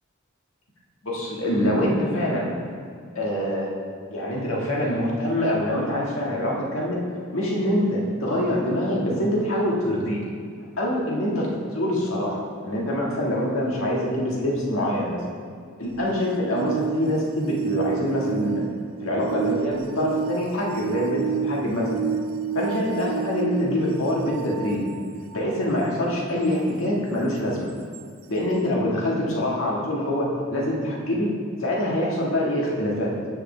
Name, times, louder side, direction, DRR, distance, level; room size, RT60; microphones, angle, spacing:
voice 1, 1.0-2.6 3.1-3.7 4.1-7.0 7.3-10.2 10.8-15.2 15.8-18.6 19.0-22.0 22.5-24.8 25.3-27.7 28.3-31.3 31.6-33.1, left 1 dB, 70° left, -4 dB, 1.7 m, -25 dB
sound 1, 15.9-25.6 27.9-28.0, right 8 dB, 80° right, 0.4 m, -31 dB
13.5 x 5.2 x 3.3 m, 2.2 s
head